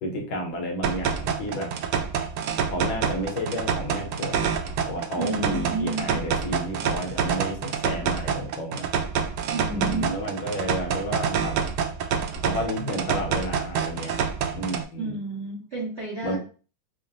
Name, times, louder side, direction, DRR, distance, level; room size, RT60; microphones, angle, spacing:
voice 1, 0.0-1.7 2.7-4.5 4.8-7.6 7.8-8.9 9.7-11.6 12.4-14.2 14.5-15.1 16.2-16.4, equal, 70° left, 1 dB, 1.7 m, -31 dB
sound 1, 0.8-14.8, right 7 dB, 85° right, 0.9 m, -27 dB
voice 2, 5.1-6.2 9.5-10.2 15.0-16.4, right 2 dB, 50° right, -6 dB, 0.9 m, -31 dB
5.9 x 2.1 x 2.6 m, 0.36 s
omnidirectional pair, 2.3 m